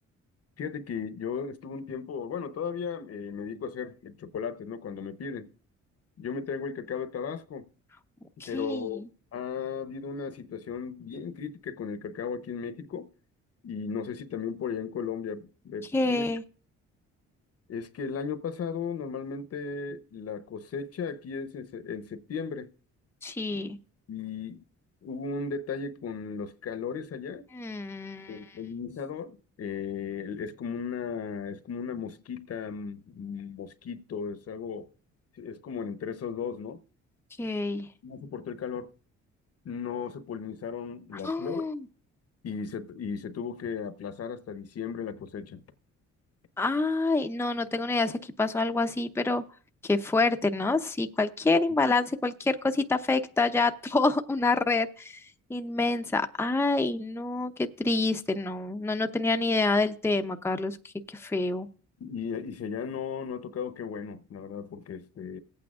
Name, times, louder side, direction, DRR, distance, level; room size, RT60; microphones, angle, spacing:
voice 1, 0.6-5.5 6.2-7.7 8.5-9.0 9.3-13.1 13.6-16.3 17.7-22.7 24.1-24.6 25.0-27.5 28.3-34.9 35.3-36.8 38.0-38.9 39.6-41.7 42.4-45.6 62.0-65.4, left 6 dB, 55° left, 0.9 m, -36 dB
voice 2, 8.4-8.9 15.9-16.4 23.2-23.8 27.5-28.4 37.4-37.9 41.2-41.8 46.6-49.4 49.8-60.8 61.1-61.7, left 3 dB, 10° left, 0.7 m, -27 dB
18.5 x 8.7 x 2.4 m
cardioid pair, 90°, 30 cm